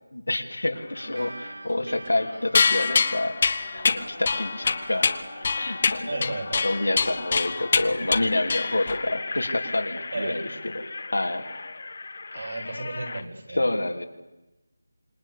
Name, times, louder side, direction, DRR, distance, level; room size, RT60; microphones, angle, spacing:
voice 1, 0.1-3.3 3.7-5.1 5.5-6.2 6.6-10.8 11.1-11.5 13.5-14.1, left 2 dB, 90° left, 4 dB, 3.4 m, -28 dB
sound 1, 0.7-1.6 2.1-13.3, left 3 dB, 55° left, 2.0 m, -39 dB
sound 2, 1.0-9.8, right 1 dB, 90° right, 4.4 m, -46 dB
sound 3, 2.5-9.1, left 5 dB, 40° left, 1.3 m, -25 dB
voice 2, 6.1-6.8 10.1-10.5 12.3-13.7, right 2 dB, 65° right, 1 dB, 7.5 m, -34 dB
27.0 x 23.0 x 8.6 m, 1.0 s
figure-of-eight pair, 165°, 0 cm